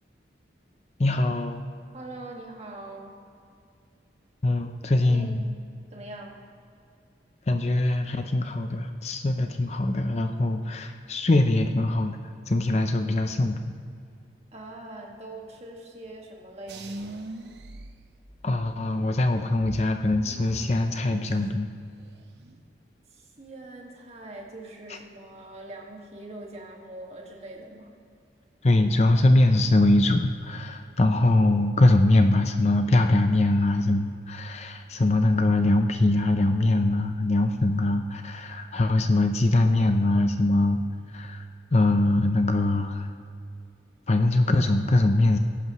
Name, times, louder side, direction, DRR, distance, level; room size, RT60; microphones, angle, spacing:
voice 1, 1.0-1.6 4.4-5.4 7.5-12.2 12.5-13.6 18.4-21.7 28.6-40.8 41.1-41.4 41.7-43.1 44.1-45.4, left 2 dB, 35° left, 6 dB, 0.5 m, -22 dB
voice 2, 1.9-3.2 4.9-5.6 5.9-6.4 14.5-16.9 23.1-27.9, right 2 dB, 35° right, -1 dB, 1.8 m, -42 dB
sound 1, 16.7-18.7 19.2-21.8 22.1-22.6, right 1 dB, 70° right, 0.9 m, -41 dB
20.0 x 11.0 x 3.1 m, 2.4 s
head